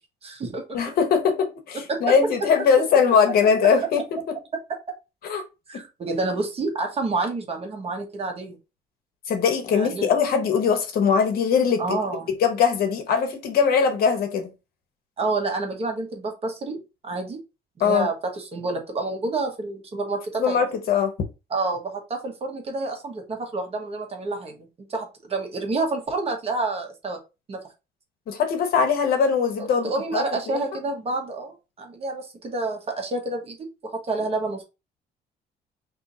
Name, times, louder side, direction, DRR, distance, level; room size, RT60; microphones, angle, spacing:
voice 1, 0.2-0.8 1.9-2.1 3.6-3.7 5.7-8.6 9.7-10.1 11.8-12.3 15.2-16.8 17.0-17.4 17.8-20.6 21.5-27.2 27.5-27.6 29.6-33.6 34.0-34.6, right 3 dB, 35° right, 1.1 m, -28 dB
voice 2, 0.7-4.0 5.2-5.4 5.7-5.8 9.3-12.0 12.4-14.5 17.8-18.1 20.4-21.1 28.3-30.6, left 6 dB, 65° left, 0.9 m, -21 dB
2.7 x 2.7 x 3.7 m
cardioid pair, 110°, 17 cm